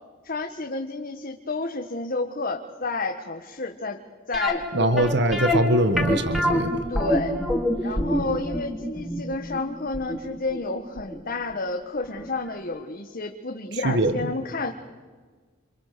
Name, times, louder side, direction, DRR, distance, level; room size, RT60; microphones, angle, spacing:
voice 1, 0.2-4.0 4.3-5.1 6.9-7.3 7.8-14.7, left 3 dB, 45° left, 4 dB, 1.5 m, -30 dB
sound 1, 4.3-11.2 11.5-11.6 12.1-12.3 12.6-12.7, equal, ahead, 3.3 m, -26 dB
voice 2, 4.7-6.8 13.8-14.1, right 1 dB, 60° right, 10 dB, 1.6 m, -22 dB
29.0 x 27.0 x 6.8 m, 1.5 s
head